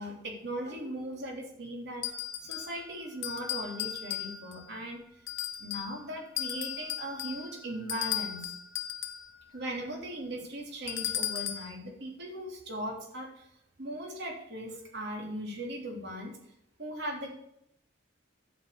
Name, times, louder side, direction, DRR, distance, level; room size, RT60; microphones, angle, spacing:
voice 1, 0.0-2.1 2.4-5.0 5.6-8.5 9.5-13.5 13.8-16.3 16.8-17.3, right 1 dB, 55° right, 0 dB, 3.4 m, -38 dB
sound 1, 2.0-2.8 3.2-4.6 5.3-6.0 6.4-9.3 10.9-11.7, left 11 dB, 65° left, 1.1 m, -36 dB
11.0 x 6.0 x 8.5 m, 0.77 s
head